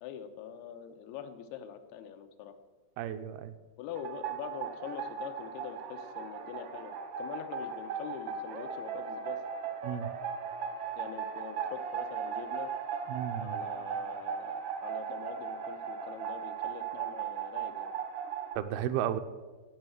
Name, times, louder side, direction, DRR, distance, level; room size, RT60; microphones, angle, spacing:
voice 1, 0.0-2.6 3.8-9.4 11.0-12.7 13.4-17.9, left 8 dB, 90° left, 8 dB, 2.8 m, -44 dB
voice 2, 3.0-3.5 9.8-10.1 13.1-13.6 18.6-19.2, right 10 dB, 85° right, 9 dB, 2.6 m, -33 dB
sound 1, 3.9-18.6, right 7 dB, 65° right, 1.4 m, -37 dB
15.5 x 5.7 x 9.1 m, 1.3 s
omnidirectional pair, 4.4 m